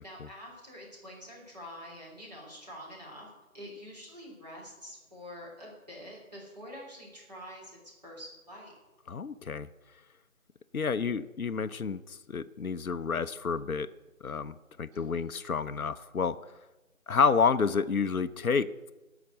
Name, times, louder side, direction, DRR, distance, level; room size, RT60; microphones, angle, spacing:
voice 1, 0.0-8.7 14.9-15.3, equal, 30° right, -5 dB, 3.4 m, -47 dB
voice 2, 9.1-9.7 10.7-13.9 14.2-16.4 17.1-18.9, left 5 dB, 80° left, 12 dB, 0.7 m, -29 dB
16.0 x 5.9 x 7.6 m, 1.1 s
figure-of-eight pair, 175°, 42 cm